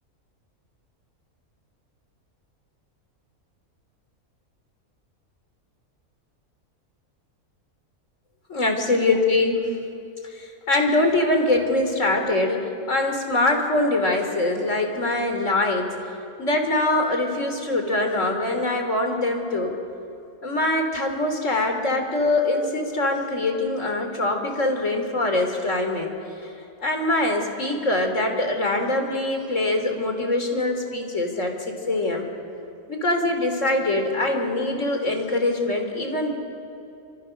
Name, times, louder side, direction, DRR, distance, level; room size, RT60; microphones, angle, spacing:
voice 1, 8.5-9.6 10.2-15.9 16.4-19.7 20.4-26.1 26.4-26.5 26.8-32.2 32.9-36.3, left 2 dB, 55° left, 4 dB, 3.8 m, -23 dB
29.0 x 26.5 x 6.6 m, 2.7 s
omnidirectional pair, 1.5 m